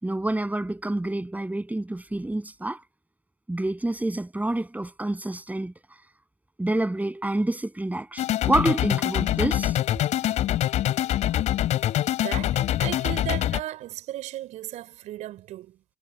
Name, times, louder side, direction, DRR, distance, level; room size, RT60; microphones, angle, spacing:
voice 1, 0.0-2.8 3.5-5.7 6.6-9.7 10.2-10.3, right 1 dB, 10° right, 7.5 m, -28 dB
sound 1, 8.2-13.6, left 12 dB, 60° left, 3.1 m, -24 dB
voice 2, 12.2-15.8, right 14 dB, 65° right, 4.4 m, -36 dB
hypercardioid pair, 50°, 13 cm